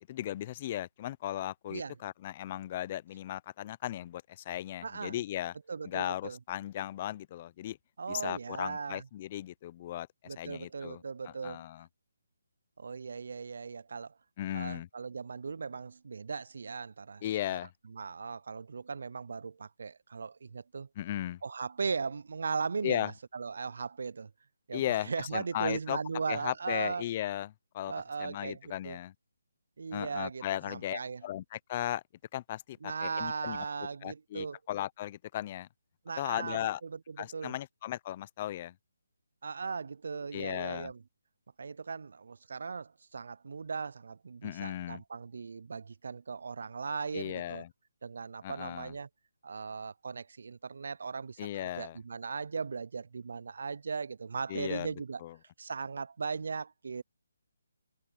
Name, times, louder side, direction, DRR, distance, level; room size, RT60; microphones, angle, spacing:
voice 1, 0.1-5.5 5.9-7.8 8.1-11.9 14.4-14.9 17.2-17.7 21.0-21.4 22.8-23.1 24.7-26.0 26.3-27.9 28.2-29.1 29.9-32.0 32.3-33.6 34.0-35.7 36.2-36.8 37.2-38.7 40.3-40.9 44.4-45.0 47.1-47.7 48.4-48.9 51.4-52.0 54.5-54.9 55.2-55.3, left 13 dB, 25° left, 0.5 m, -36 dB
voice 2, 4.8-5.2 5.7-6.4 8.0-9.1 10.3-11.7 12.8-14.2 14.5-17.2 17.5-17.6 17.8-20.9 21.4-24.3 24.7-27.1 27.9-29.0 29.8-31.2 32.8-34.6 36.1-37.6 39.4-41.0 41.6-47.6 48.0-49.1 49.4-55.2 55.6-57.0, right 5 dB, 60° right, 0.3 m, -38 dB
hypercardioid pair, 170°, 0 cm